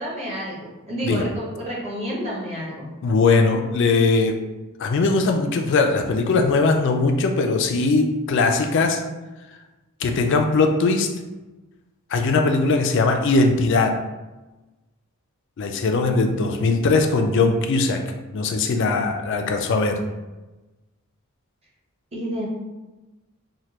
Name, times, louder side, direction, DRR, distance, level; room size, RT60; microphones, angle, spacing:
voice 1, 0.0-2.9 22.1-22.5, equal, 30° right, -4 dB, 0.8 m, -29 dB
voice 2, 3.0-4.3 4.8-9.0 10.0-11.1 12.1-14.0 15.6-18.0 18.3-20.0, left 3 dB, 55° left, 4 dB, 0.3 m, -20 dB
3.2 x 2.1 x 2.8 m, 1.1 s
head